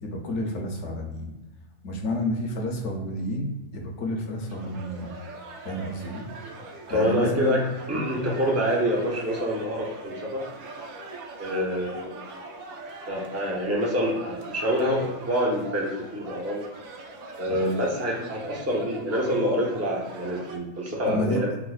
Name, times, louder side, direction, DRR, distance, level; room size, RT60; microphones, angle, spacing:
voice 1, 0.0-1.3 1.8-5.1 5.6-6.2 6.9-7.6 17.5-17.7 21.1-21.4, left 1 dB, 65° left, 1 dB, 0.9 m, -30 dB
sound 1, 4.5-20.6, right 2 dB, 80° right, 1.0 m, -41 dB
voice 2, 6.9-10.4 11.4-12.1 13.1-16.6 17.4-21.5, equal, 25° right, -3 dB, 0.3 m, -26 dB
4.7 x 2.1 x 2.3 m, 1.1 s
omnidirectional pair, 1.5 m